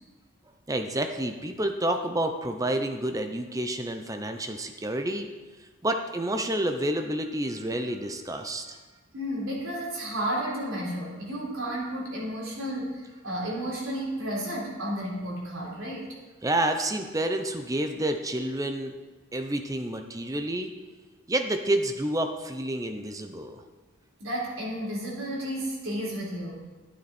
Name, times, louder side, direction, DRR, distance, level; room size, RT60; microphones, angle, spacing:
voice 1, 0.7-5.3 5.8-8.8 16.4-18.9 19.3-20.7 21.3-23.6, right 1 dB, 15° right, 6 dB, 0.6 m, -29 dB
voice 2, 9.1-16.1 24.2-26.5, right 1 dB, 70° right, -5 dB, 3.7 m, -32 dB
11.5 x 9.5 x 4.3 m, 1.3 s
head